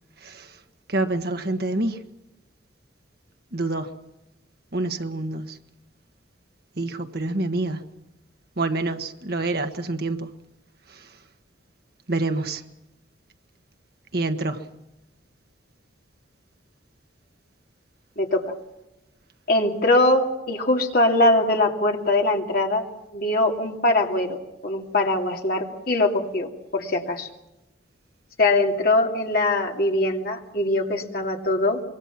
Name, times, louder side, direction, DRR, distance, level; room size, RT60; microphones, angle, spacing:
voice 1, 0.2-0.6 0.9-2.0 3.5-3.9 4.7-5.6 6.8-7.9 8.6-10.3 10.9-11.1 12.1-12.6 14.1-14.7, right 2 dB, 50° right, 1.4 m, -27 dB
voice 2, 18.2-18.5 19.5-22.9 23.1-24.4 24.6-27.3 28.4-31.8, left 2 dB, 50° left, 2.8 m, -22 dB
25.5 x 23.0 x 6.0 m
head